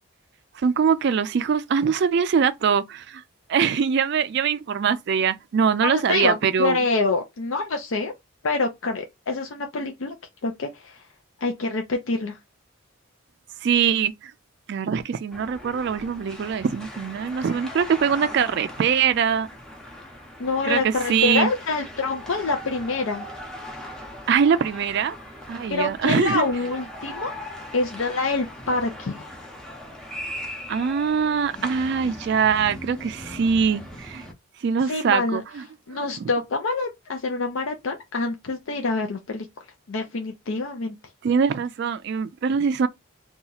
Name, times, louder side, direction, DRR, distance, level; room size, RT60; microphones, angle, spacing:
voice 1, 0.6-3.2 3.5-6.8 13.6-14.3 14.7-19.5 20.6-21.5 24.3-25.2 25.5-26.5 30.7-34.2 34.6-35.4 36.2-36.3 41.2-42.9, right 6 dB, 55° right, 0.3 m, -22 dB
voice 2, 5.8-8.1 8.4-10.1 10.4-11.0 11.4-12.4 20.4-23.3 25.7-27.3 27.7-29.2 34.8-35.4 35.9-39.5 39.9-41.0, left 3 dB, 70° left, 0.5 m, -26 dB
sound 1, 15.3-34.3, left 1 dB, 5° left, 0.6 m, -39 dB
2.9 x 2.3 x 3.9 m
head